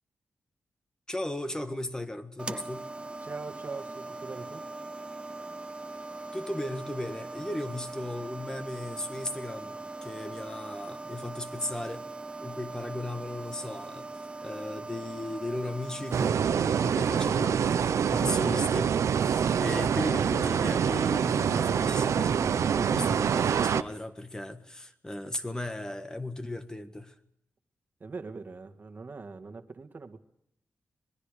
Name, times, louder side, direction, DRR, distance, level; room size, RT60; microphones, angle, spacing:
voice 1, 1.1-2.9 6.3-12.1 12.4-14.1 14.4-27.1, left 1 dB, 15° left, 1.6 m, -36 dB
sound 1, 2.4-16.3, right 2 dB, 20° right, 0.7 m, -41 dB
voice 2, 3.2-4.7 28.0-30.2, right 4 dB, 40° right, 1.9 m, -41 dB
sound 2, 16.1-23.8, right 7 dB, 80° right, 0.8 m, -26 dB
26.0 x 21.5 x 5.0 m
wide cardioid pair, 120°, 5 cm